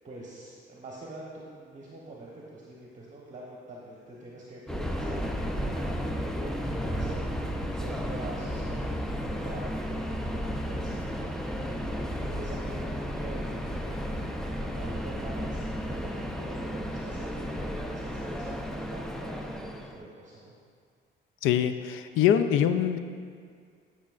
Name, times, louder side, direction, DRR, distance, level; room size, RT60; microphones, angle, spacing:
voice 1, 0.0-20.5, right 2 dB, 40° right, -5 dB, 1.1 m, -45 dB
Subway metro underground, 4.7-20.0, equal, ahead, 0.5 m, -33 dB
voice 2, 21.4-23.0, left 9 dB, 90° left, 10 dB, 0.4 m, -24 dB
10.0 x 6.0 x 2.5 m, 2.1 s
cardioid pair, 90°, 20 cm